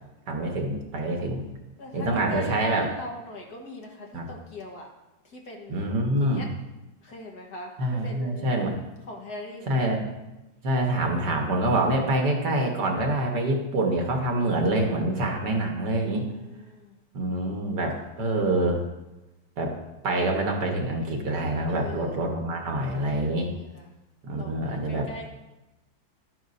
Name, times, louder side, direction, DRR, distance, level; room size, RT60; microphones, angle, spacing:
voice 1, 0.3-1.5 1.9-2.8 4.1-4.3 5.7-6.5 7.8-8.7 9.7-10.1 10.6-16.3 17.1-18.8 19.6-19.7 20.0-23.5 24.2-25.1, right 1 dB, 60° right, 2 dB, 1.7 m, -26 dB
voice 2, 1.8-4.9 5.2-6.5 7.0-8.5 9.1-9.9 16.1-17.0 21.7-22.2 23.5-23.9 24.3-25.3, left 1 dB, 55° left, 0 dB, 1.7 m, -40 dB
12.5 x 9.5 x 2.6 m, 1.0 s
omnidirectional pair, 2.2 m